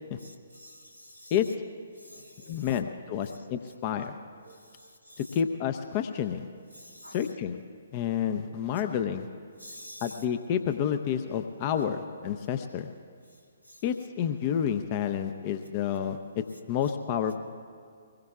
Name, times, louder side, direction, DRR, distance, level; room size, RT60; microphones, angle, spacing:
voice 1, 0.2-1.4 2.0-2.8 3.2-3.7 4.4-5.4 6.7-7.2 9.6-10.2 13.7-13.8, equal, 90° left, 2 dB, 1.7 m, -49 dB
voice 2, 2.5-4.2 5.3-6.5 7.1-7.6 7.9-9.3 10.0-12.9 13.8-17.3, left 8 dB, 30° left, 8 dB, 0.6 m, -29 dB
23.5 x 20.5 x 2.4 m, 2.2 s
figure-of-eight pair, 130°, 0 cm